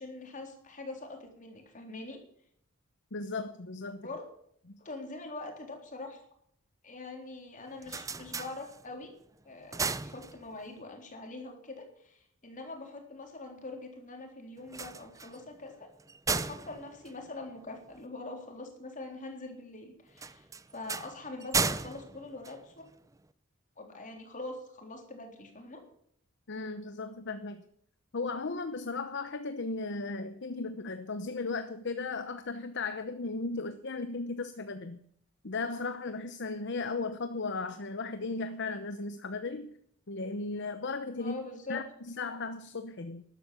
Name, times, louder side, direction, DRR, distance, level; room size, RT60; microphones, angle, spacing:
voice 1, 0.0-2.2 4.0-4.2 4.8-6.2 6.8-9.1 9.4-15.9 16.3-20.5 20.7-22.9 23.8-25.8 41.2-41.8, left 2 dB, 35° left, 3 dB, 3.7 m, -43 dB
voice 2, 3.1-4.1 26.5-27.6 28.1-35.0 35.4-39.7 40.1-41.4 41.7-43.2, left 3 dB, 55° left, 10 dB, 0.9 m, -36 dB
sound 1, 7.6-9.1 9.5-10.8 14.6-18.1 20.1-23.2, right 4 dB, 15° right, 0.5 m, -36 dB
13.0 x 12.0 x 7.0 m, 0.66 s
head